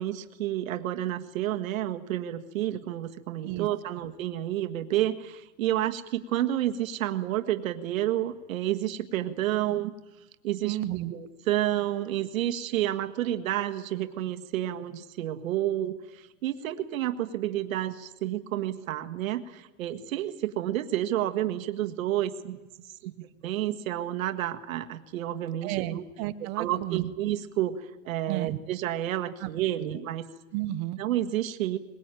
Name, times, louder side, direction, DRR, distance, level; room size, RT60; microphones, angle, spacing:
voice 1, 0.0-9.9 10.4-10.8 11.1-22.6 23.0-26.0 26.6-30.2 31.0-31.8, right 13 dB, 70° right, 7 dB, 1.7 m, -30 dB
voice 2, 10.6-11.1 25.6-25.9 26.2-27.1 28.3-28.6 29.4-29.5 29.8-30.0 30.5-31.0, right 16 dB, 30° right, 14 dB, 0.7 m, -32 dB
22.5 x 20.5 x 9.0 m, 1.1 s
supercardioid pair, 150°, 42 cm